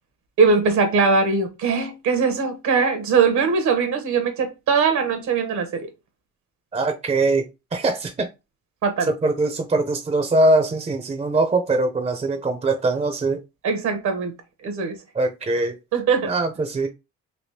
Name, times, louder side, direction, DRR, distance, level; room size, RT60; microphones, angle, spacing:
voice 1, 0.4-5.9 8.8-9.1 13.6-14.3 14.6-15.0 15.9-16.3, right 5 dB, 75° right, 0.9 m, -21 dB
voice 2, 6.7-8.3 9.1-13.4 15.1-15.8 16.2-16.9, right 2 dB, 20° right, 0.5 m, -22 dB
3.4 x 2.7 x 2.7 m
cardioid pair, 90°, 30 cm